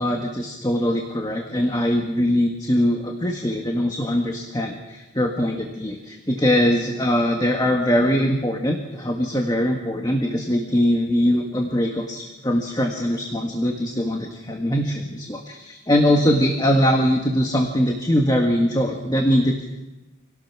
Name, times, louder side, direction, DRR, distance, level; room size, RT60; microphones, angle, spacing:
voice 1, 0.0-19.7, equal, 20° left, 2 dB, 1.8 m, -22 dB
26.5 x 17.5 x 6.2 m, 1.1 s
head